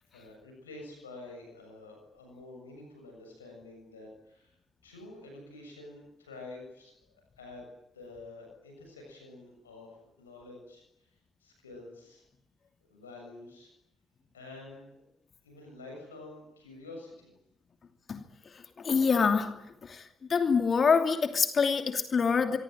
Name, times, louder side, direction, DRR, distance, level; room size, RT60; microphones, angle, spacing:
voice 1, 0.1-4.5 4.8-7.6 7.9-10.8 11.4-12.2 12.9-13.7 14.3-14.9 15.4-17.3, left 2 dB, 80° left, 2 dB, 7.1 m, -48 dB
voice 2, 18.8-20.0 20.3-22.6, left 5 dB, 40° left, 7 dB, 2.8 m, -26 dB
25.5 x 24.5 x 9.0 m, 0.80 s
figure-of-eight pair, 40°, 0 cm